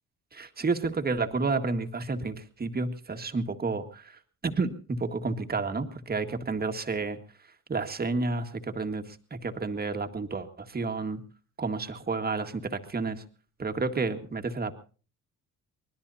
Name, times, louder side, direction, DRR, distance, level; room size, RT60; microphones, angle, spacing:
voice 1, 0.3-7.2 7.7-11.2 11.6-13.2 13.6-14.7, right 3 dB, 30° right, 7 dB, 1.8 m, -31 dB
25.0 x 20.0 x 2.8 m, 0.38 s
cardioid pair, 90°, 30 cm